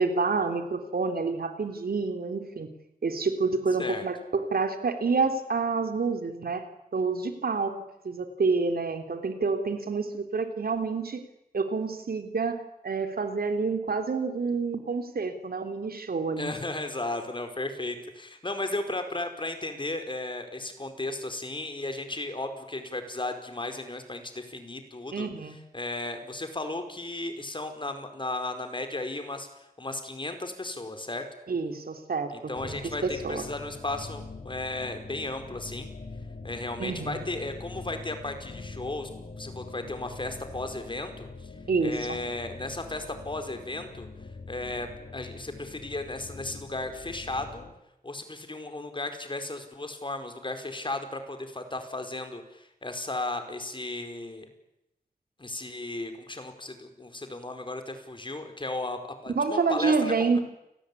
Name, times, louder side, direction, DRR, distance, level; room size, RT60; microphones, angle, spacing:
voice 1, 0.0-2.7 3.0-6.6 6.9-7.8 8.0-11.2 11.5-16.5 25.1-25.6 31.5-33.4 36.8-37.2 41.7-42.2 59.4-60.4, right 4 dB, 75° right, 7 dB, 3.5 m, -28 dB
voice 2, 16.4-25.3 25.7-31.2 32.3-35.9 36.4-39.1 39.4-41.5 41.8-44.1 44.5-47.6 48.0-54.5 55.4-60.4, left 2 dB, 30° left, 7 dB, 4.7 m, -35 dB
sound 1, 32.5-47.7, left 3 dB, 60° left, 4.4 m, -43 dB
29.0 x 19.5 x 9.9 m, 0.87 s
wide cardioid pair, 85°, 16 cm